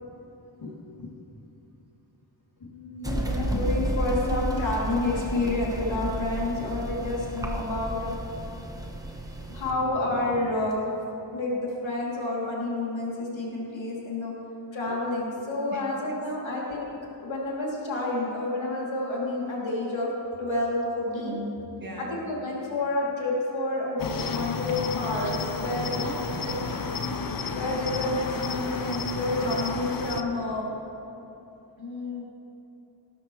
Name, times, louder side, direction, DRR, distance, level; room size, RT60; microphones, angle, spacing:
voice 1, 2.6-8.1 9.5-10.8 11.3-14.3 14.7-16.8 17.2-20.1 20.4-21.4 22.0-26.0 26.5-26.6 27.5-30.7 31.8-32.2, left 2 dB, 70° left, -5 dB, 3.0 m, -29 dB
sound 1, 3.0-9.7, right 1 dB, 10° right, 1.0 m, -32 dB
voice 2, 15.7-16.6 21.1-22.2 26.0-26.6, right 1 dB, 45° right, 0 dB, 1.7 m, -39 dB
Cricket, 24.0-30.2, left 4 dB, 45° left, 0.7 m, -32 dB
17.5 x 12.5 x 3.2 m, 2.9 s
wide cardioid pair, 130°, 47 cm